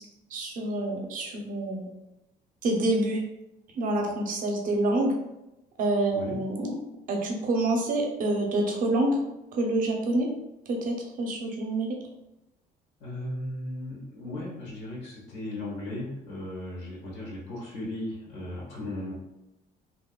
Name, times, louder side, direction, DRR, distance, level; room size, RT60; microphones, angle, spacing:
voice 1, 0.3-1.9 2.6-3.2 3.7-5.1 5.8-6.8 7.1-9.2 9.5-10.3 10.7-11.9, right 2 dB, 50° right, 2 dB, 0.6 m, -27 dB
voice 2, 13.0-19.1, left 1 dB, 80° left, -5 dB, 0.9 m, -36 dB
2.7 x 2.1 x 2.2 m, 0.91 s
cardioid pair, 110°, 17 cm